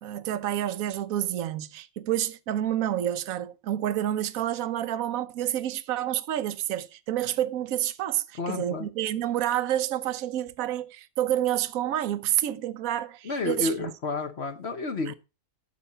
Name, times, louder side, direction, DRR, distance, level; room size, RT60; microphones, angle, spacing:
voice 1, 0.0-13.9, right 12 dB, 55° right, 1.1 m, -29 dB
voice 2, 8.4-8.9 13.2-15.1, left 3 dB, 45° left, 1.1 m, -30 dB
13.0 x 4.4 x 6.7 m
omnidirectional pair, 2.0 m